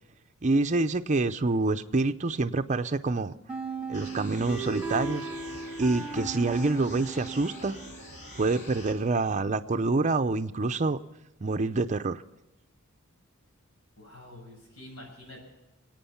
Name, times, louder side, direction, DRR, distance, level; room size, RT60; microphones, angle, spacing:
voice 1, 0.4-3.3 3.9-5.3 5.8-7.7 8.4-11.0 11.4-12.2, right 3 dB, 35° right, 8 dB, 0.6 m, -27 dB
sound 1, 3.5-8.2, right 4 dB, 5° right, 1.4 m, -37 dB
sound 2, 3.9-8.9, left 1 dB, 55° left, 3.4 m, -45 dB
voice 2, 14.0-15.4, left 1 dB, 80° left, -1 dB, 7.1 m, -47 dB
25.5 x 9.1 x 5.8 m, 1.0 s
head